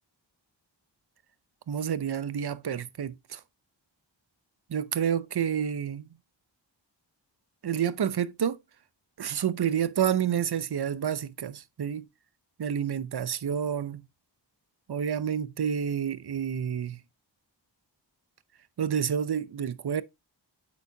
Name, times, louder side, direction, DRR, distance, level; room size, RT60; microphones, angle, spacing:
voice 1, 1.7-3.4 4.7-6.1 7.6-8.6 9.2-12.1 12.6-14.0 14.9-17.0 18.8-20.0, right 8 dB, 60° right, 0.6 m, -29 dB
8.1 x 5.3 x 2.7 m
wide cardioid pair, 45°, 46 cm